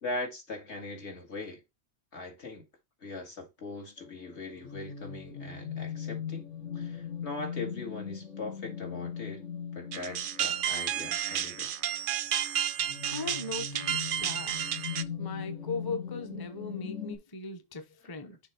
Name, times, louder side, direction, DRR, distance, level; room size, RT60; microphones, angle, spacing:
voice 1, 0.0-1.6 2.1-2.7 3.0-6.5 6.7-9.4 9.7-11.7, left 2 dB, 65° left, 2.1 m, -40 dB
sound 1, 4.0-17.2, left 7 dB, 85° left, 2.0 m, -40 dB
sound 2, 9.9-15.0, right 9 dB, 60° right, 0.6 m, -31 dB
voice 2, 13.1-14.6 15.2-18.4, left 3 dB, 20° left, 0.7 m, -39 dB
6.6 x 3.4 x 4.5 m
omnidirectional pair, 1.3 m